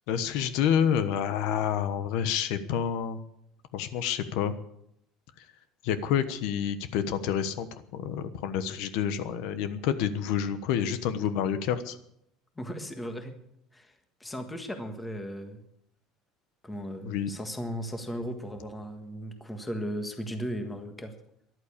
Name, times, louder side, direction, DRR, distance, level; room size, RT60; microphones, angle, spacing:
voice 1, 0.1-3.2 3.7-4.5 5.8-12.0 17.0-17.3, left 8 dB, 65° left, 11 dB, 1.2 m, -28 dB
voice 2, 12.6-13.4 13.7-13.9 14.2-15.6 16.6-21.1, equal, 5° left, 6 dB, 1.5 m, -36 dB
14.0 x 11.5 x 8.5 m, 0.75 s
cardioid pair, 180°, 0 cm